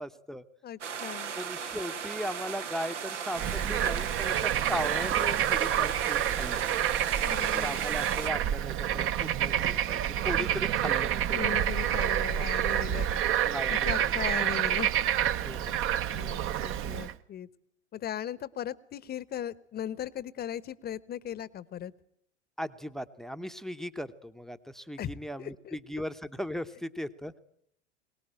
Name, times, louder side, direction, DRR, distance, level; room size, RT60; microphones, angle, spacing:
voice 1, 0.0-0.4 1.4-6.9 7.5-11.5 13.5-13.9 15.5-15.8 22.6-27.4, equal, ahead, 13 dB, 0.9 m, -38 dB
voice 2, 0.6-1.3 7.2-7.8 11.3-13.2 13.7-14.9 16.1-17.5 17.9-21.9 25.0-25.1 25.4-25.8, left 10 dB, 25° left, 20 dB, 1.0 m, -38 dB
sound 1, 0.8-8.3, right 7 dB, 80° right, 1.5 m, -37 dB
Bird / Frog, 3.3-17.1, right 11 dB, 35° right, 0.9 m, -28 dB
23.0 x 19.0 x 8.9 m, 0.71 s
figure-of-eight pair, 85°, 35 cm